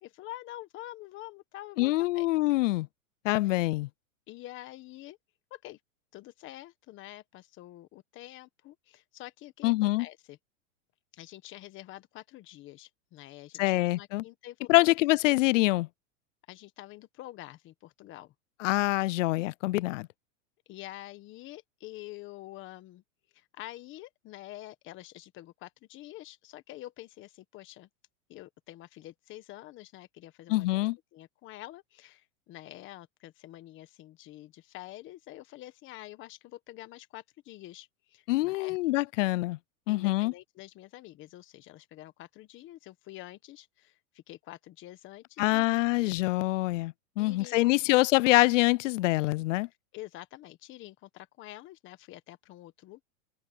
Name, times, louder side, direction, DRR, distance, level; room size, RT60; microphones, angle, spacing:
voice 1, 0.0-2.3 4.3-5.2 5.5-5.8 6.1-10.4 11.1-15.0 16.5-18.3 20.7-23.0 23.3-27.9 28.3-38.8 39.9-46.0 47.2-47.9 49.9-53.0, left 16 dB, 30° left, 1.4 m, -47 dB
voice 2, 1.8-2.9 3.2-3.9 9.6-10.1 13.6-14.2 14.7-15.9 18.6-20.1 30.5-31.0 38.3-39.6 39.9-40.3 45.4-49.7, left 19 dB, 65° left, 0.5 m, -25 dB
open air
supercardioid pair, 150°, 40 cm